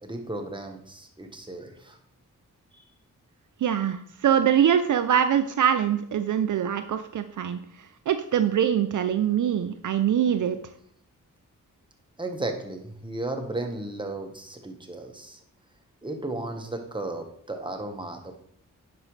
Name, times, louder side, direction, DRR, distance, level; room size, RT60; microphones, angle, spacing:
voice 1, 0.0-2.0 2.7-2.8 12.2-15.4 16.0-18.3, right 2 dB, 15° right, 4 dB, 1.2 m, -34 dB
voice 2, 3.6-7.6 8.1-10.6, right 9 dB, 65° right, 9 dB, 0.5 m, -23 dB
10.5 x 4.9 x 3.2 m, 0.68 s
cardioid pair, 65°, 34 cm